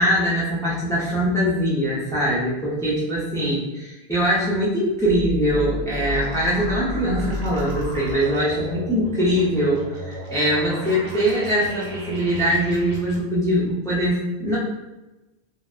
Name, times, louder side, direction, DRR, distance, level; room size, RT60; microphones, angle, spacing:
voice 1, 0.0-14.6, equal, 5° left, -7 dB, 0.3 m, -22 dB
sound 1, 5.0-13.2, left 1 dB, 85° right, 1.0 m, -33 dB
2.7 x 2.1 x 2.3 m, 1.0 s
omnidirectional pair, 1.1 m